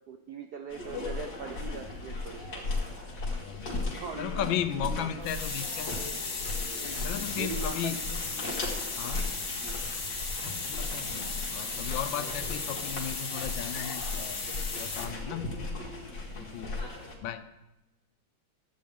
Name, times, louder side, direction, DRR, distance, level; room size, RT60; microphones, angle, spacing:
voice 1, 0.1-2.6 4.0-5.3 7.4-8.0 8.3-8.6 9.6-9.8 15.3-15.4 16.8-16.9, right 6 dB, 75° right, 5 dB, 0.9 m, -41 dB
sound 1, 0.7-17.2, left 3 dB, 55° left, 2.5 m, -37 dB
voice 2, 3.4-3.8 4.2-5.9 7.0-8.0 8.9-9.4 10.4-11.1 11.5-14.4 14.7-15.6 16.4-16.7 17.2-17.5, left 9 dB, 75° left, 11 dB, 1.3 m, -35 dB
sound 2, 5.2-15.1, left 4 dB, 40° left, 1.4 m, -36 dB
13.0 x 8.4 x 3.5 m, 0.98 s
omnidirectional pair, 2.3 m